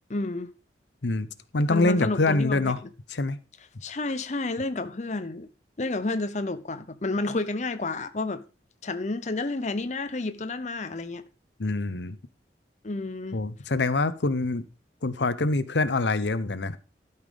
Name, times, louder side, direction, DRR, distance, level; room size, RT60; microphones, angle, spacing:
voice 1, 0.1-0.5 1.7-2.7 3.8-5.5 5.8-8.4 8.8-11.2 12.8-13.4, left 2 dB, 40° left, 0.7 m, -30 dB
voice 2, 1.5-2.8 3.1-3.4 11.6-12.2 13.3-14.6 15.0-16.8, left 2 dB, 80° left, 0.8 m, -25 dB
12.5 x 5.8 x 5.1 m
head